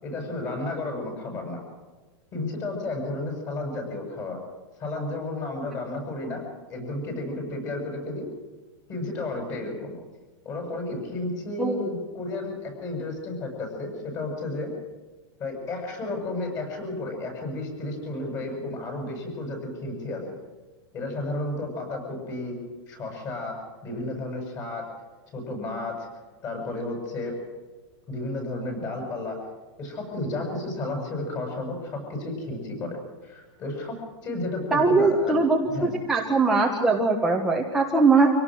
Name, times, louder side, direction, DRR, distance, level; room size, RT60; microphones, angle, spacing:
voice 1, 0.0-1.6 2.3-4.4 4.8-8.3 8.9-10.0 10.4-14.7 15.4-20.2 20.9-22.6 22.9-24.9 25.3-26.1 26.4-27.3 28.1-29.5 29.8-34.0 34.2-35.4 35.7-35.9, left 2 dB, 25° left, 2 dB, 7.2 m, -32 dB
voice 2, 11.6-11.9 34.7-38.3, right 3 dB, 5° right, -2 dB, 1.5 m, -21 dB
26.0 x 18.0 x 6.4 m, 1.3 s
supercardioid pair, 165°, 15 cm